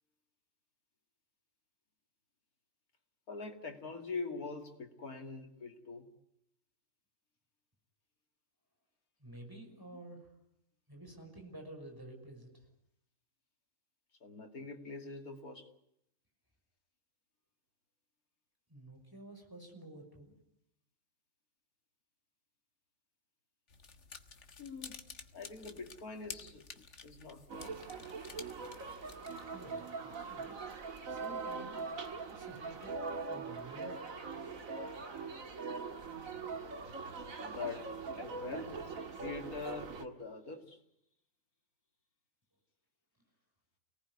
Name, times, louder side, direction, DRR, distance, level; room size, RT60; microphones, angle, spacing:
voice 1, 3.3-6.1 9.9-10.0 14.2-15.7 24.6-25.0 25.3-26.7 27.0-27.8 37.5-37.9 38.2-39.0 39.2-40.8, left 4 dB, 80° left, 5 dB, 2.9 m, -44 dB
voice 2, 9.2-10.3 10.9-12.5 18.7-20.4 29.4-30.6 31.1-31.8 32.3-34.0, right 1 dB, 15° right, 2 dB, 6.0 m, -51 dB
sound 1, 23.7-29.4, left 5 dB, 55° left, 1.8 m, -51 dB
sound 2, 27.5-40.0, right 4 dB, 65° right, 2.2 m, -42 dB
29.5 x 19.0 x 9.6 m, 0.80 s
omnidirectional pair, 1.5 m